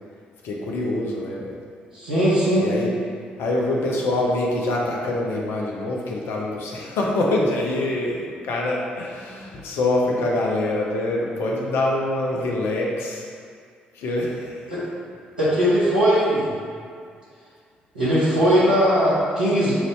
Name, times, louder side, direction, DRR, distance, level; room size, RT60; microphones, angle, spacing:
voice 1, 0.4-1.5 2.6-2.9 3.4-13.3 13.9-14.6, left 2 dB, 60° left, -2 dB, 0.7 m, -25 dB
voice 2, 1.9-2.7 14.7-14.8 15.4-16.5 17.9-19.7, equal, 85° right, -12 dB, 1.3 m, -19 dB
5.7 x 2.7 x 3.2 m, 2.2 s
figure-of-eight pair, 40°, 5 cm